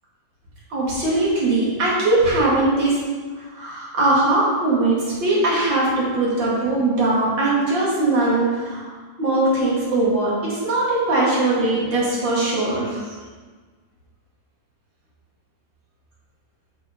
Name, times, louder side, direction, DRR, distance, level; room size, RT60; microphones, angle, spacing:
voice 1, 0.7-3.0 3.5-8.8 9.2-13.0, right 2 dB, 85° right, -6 dB, 2.9 m, -20 dB
6.9 x 5.4 x 5.2 m, 1.4 s
omnidirectional pair, 2.0 m